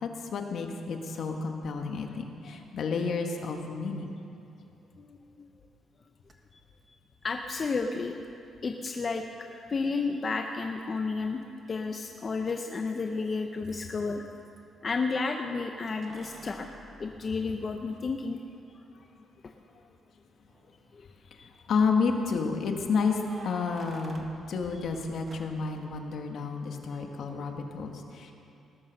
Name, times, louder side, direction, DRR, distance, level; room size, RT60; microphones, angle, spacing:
voice 1, 0.0-4.3 18.9-19.0 21.3-21.4 21.7-28.3, left 4 dB, 60° left, 3 dB, 1.6 m, -31 dB
voice 2, 5.0-5.5 6.5-6.6 7.2-8.1 8.6-11.4 11.7-14.2 14.8-16.7 17.0-18.4 19.4-19.5 20.9-21.5, left 4 dB, 30° left, 4 dB, 0.7 m, -32 dB
Keys jangling, 6.2-6.3 8.2-8.3 10.6-11.1 11.4-14.6 15.9-18.0 18.5-18.6 20.4-20.9 22.9-25.8, right 3 dB, 30° right, 1.3 m, -50 dB
19.0 x 11.0 x 6.5 m, 2.8 s
cardioid pair, 145°, 0 cm